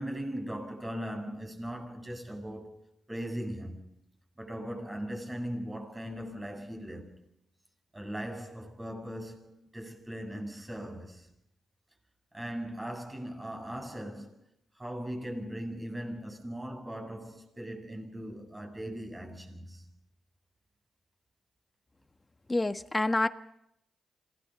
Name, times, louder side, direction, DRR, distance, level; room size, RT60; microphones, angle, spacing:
voice 1, 0.0-2.8 3.1-3.9 4.4-7.1 7.9-11.3 12.3-14.4 14.7-19.8, equal, 20° right, 7.8 m, -39 dB
voice 2, 22.5-23.3, left 2 dB, 20° left, 1.4 m, -27 dB
26.5 x 19.0 x 6.0 m
supercardioid pair, 55°, 0 cm